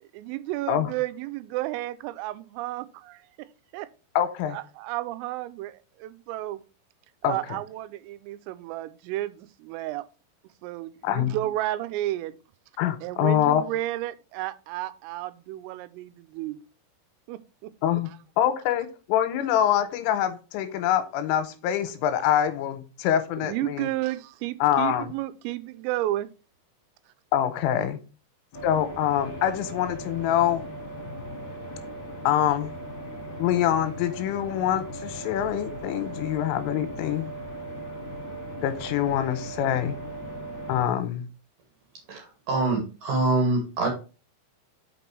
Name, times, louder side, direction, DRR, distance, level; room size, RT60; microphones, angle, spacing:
voice 1, 0.0-3.5 3.7-3.9 4.5-6.6 7.2-10.0 10.6-12.4 13.0-16.6 17.3-17.7 23.4-26.3, right 15 dB, 90° right, 3.2 m, -32 dB
voice 2, 4.2-4.6 7.2-7.4 11.0-11.3 12.8-13.6 17.8-18.1 18.4-23.9 24.6-25.1 27.3-28.0 28.6-30.6 32.2-32.7 33.4-37.3 38.6-40.0 40.7-41.3, left 10 dB, 90° left, 3.3 m, -25 dB
sound 1, 28.5-40.8, right 1 dB, 55° left, 2.2 m, -38 dB
voice 3, 42.1-43.9, right 2 dB, 60° right, 2.4 m, -25 dB
6.1 x 6.0 x 4.6 m
omnidirectional pair, 5.8 m